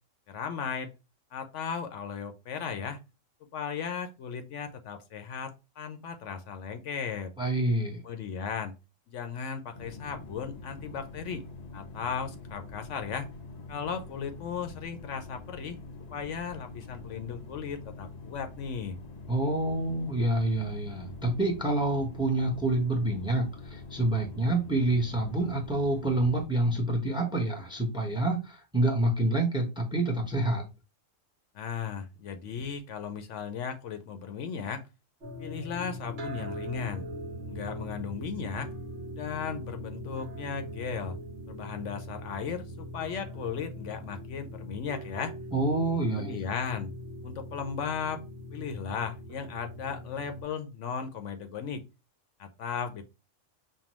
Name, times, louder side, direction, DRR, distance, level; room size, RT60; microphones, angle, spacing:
voice 1, 0.3-0.9 1.3-3.0 3.5-5.5 5.8-7.3 8.0-8.7 9.1-11.4 11.7-13.3 13.7-15.8 16.1-19.0 31.5-34.8 35.4-37.0 37.5-38.7 39.1-41.2 41.5-45.3 46.2-46.9 47.2-48.2 48.5-51.8 52.4-53.0, left 6 dB, 70° left, 7 dB, 0.9 m, -36 dB
voice 2, 7.4-8.0 19.3-30.6 45.5-46.4, right 2 dB, 5° right, 3 dB, 0.7 m, -27 dB
sound 1, 9.7-26.5, left 3 dB, 55° left, 0.4 m, -45 dB
sound 2, 35.2-50.4, equal, 55° right, 1.1 m, -41 dB
5.5 x 2.3 x 3.0 m, 0.28 s
omnidirectional pair, 1.4 m